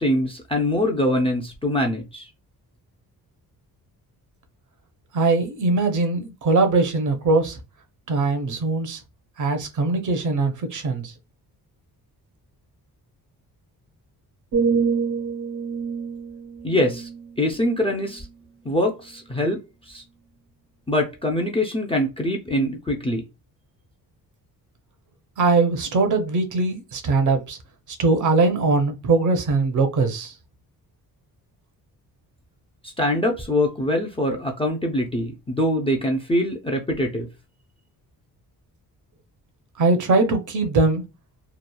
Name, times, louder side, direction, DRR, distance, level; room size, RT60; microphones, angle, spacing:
voice 1, 0.0-2.3 16.6-17.1 17.4-18.3 18.6-19.6 19.8-20.0 20.9-23.2 32.8-37.3, left 1 dB, 15° left, 0.4 m, -23 dB
voice 2, 5.1-7.6 8.1-9.0 9.4-11.1 25.4-27.6 28.0-30.3 39.8-41.0, right 3 dB, 50° right, 0.6 m, -21 dB
sound 1, 14.5-18.4 18.9-19.2, right 5 dB, 85° right, 1.1 m, -27 dB
2.9 x 2.3 x 2.2 m
wide cardioid pair, 145°, 38 cm